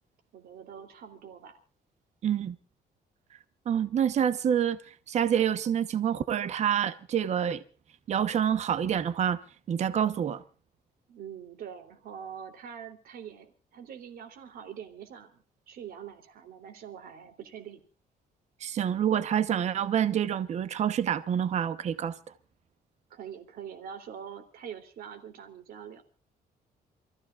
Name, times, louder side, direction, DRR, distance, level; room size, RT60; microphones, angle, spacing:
voice 1, 0.3-1.6 11.1-17.8 23.1-26.0, right 8 dB, 70° right, 3.1 m, -44 dB
voice 2, 2.2-2.6 3.7-4.8 5.1-7.6 8.1-9.4 9.7-10.4 18.6-22.1, right 9 dB, 45° right, 0.9 m, -27 dB
28.0 x 15.0 x 2.4 m
cardioid pair, 160°, 16 cm